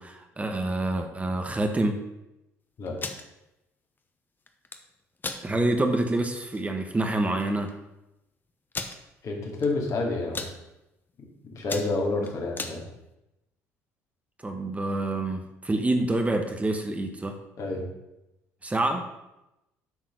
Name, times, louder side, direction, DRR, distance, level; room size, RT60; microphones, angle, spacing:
voice 1, 0.0-2.0 5.4-7.7 14.4-17.4 18.6-19.1, right 2 dB, 20° right, 4 dB, 1.2 m, -27 dB
sound 1, 2.9-3.2 4.5-4.8 5.2-5.4 5.9-6.0 6.4-6.6 7.4-7.5 7.7-7.8 8.7-9.0 9.6-9.9 10.2-10.5 11.1-11.3 11.6-12.8, left 3 dB, 30° left, 1.0 m, -35 dB
voice 2, 9.2-10.4 11.5-12.8 17.6-17.9, left 3 dB, 55° left, 0 dB, 2.3 m, -29 dB
8.2 x 4.0 x 6.5 m, 0.92 s
hypercardioid pair, 65°, 7 cm